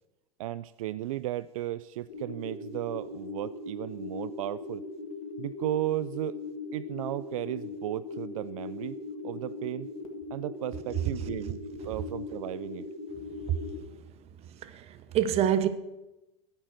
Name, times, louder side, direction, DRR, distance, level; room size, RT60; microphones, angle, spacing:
voice 1, 0.4-4.8 5.4-6.4 6.7-9.0 9.2-9.9 10.3-11.6 11.8-12.8, right 14 dB, 80° right, 0.4 m, -34 dB
sound 1, 2.1-13.8, left 3 dB, 80° left, 1.9 m, -40 dB
voice 2, 13.3-13.8 14.4-15.7, right 10 dB, 35° right, 0.9 m, -28 dB
10.5 x 7.6 x 6.1 m
hypercardioid pair, 115°, 17 cm